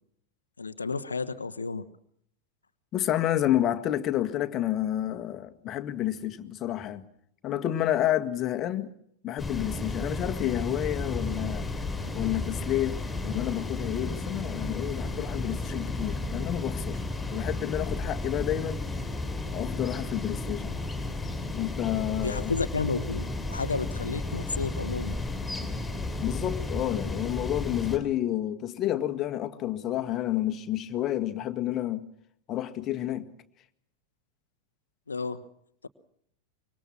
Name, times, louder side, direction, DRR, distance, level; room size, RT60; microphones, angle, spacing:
voice 1, 0.6-1.9 22.2-25.1 35.1-35.4, left 4 dB, 75° left, 1.1 m, -31 dB
voice 2, 2.9-7.1 7.4-8.9 9.2-11.7 12.1-17.0 17.3-18.8 19.5-20.8 21.5-22.5 26.2-32.0 32.5-33.3, left 12 dB, 30° left, 1.9 m, -30 dB
sound 1, 9.4-28.0, left 2 dB, 5° left, 6.0 m, -33 dB
25.5 x 24.0 x 6.1 m
figure-of-eight pair, 90°, 0 cm